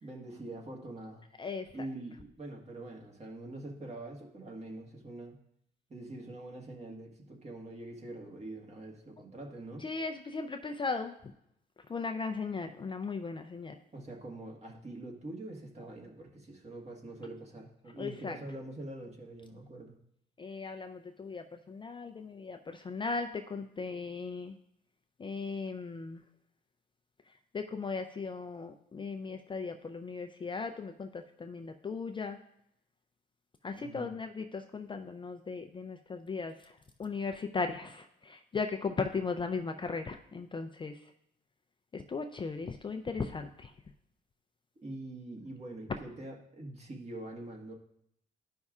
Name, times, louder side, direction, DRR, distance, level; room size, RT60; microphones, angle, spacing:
voice 1, 0.0-1.3 1.7-5.4 5.9-9.8 13.9-20.0 33.7-34.1 44.8-47.7, right 2 dB, 35° right, 0 dB, 1.5 m, -44 dB
voice 2, 1.4-1.9 9.8-11.1 11.9-13.8 18.0-18.4 20.4-24.5 25.2-26.2 27.5-32.4 33.6-36.7 37.0-41.0 41.9-43.7, left 4 dB, 25° left, 6 dB, 0.4 m, -37 dB
12.0 x 5.3 x 2.4 m, 0.74 s
cardioid pair, 90°, 20 cm